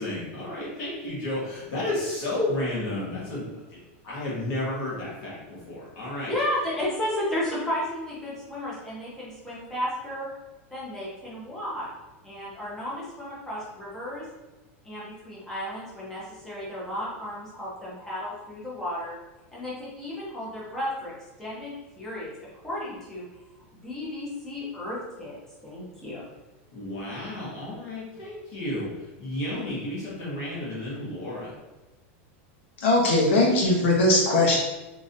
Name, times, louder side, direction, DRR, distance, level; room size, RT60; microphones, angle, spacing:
voice 1, 0.0-3.4 3.7-5.4 5.7-6.3 26.7-28.9 29.2-31.5, left 1 dB, 40° left, -7 dB, 1.2 m, -32 dB
voice 2, 6.0-10.3 10.7-11.9 12.2-14.3 14.8-19.2 19.5-21.1 21.4-22.3 22.6-23.3 23.8-26.2, left 1 dB, 5° left, -7 dB, 1.0 m, -33 dB
voice 3, 32.8-34.6, left 2 dB, 65° left, -2 dB, 1.2 m, -20 dB
3.9 x 3.0 x 2.6 m, 1.1 s
supercardioid pair, 170°, 7 cm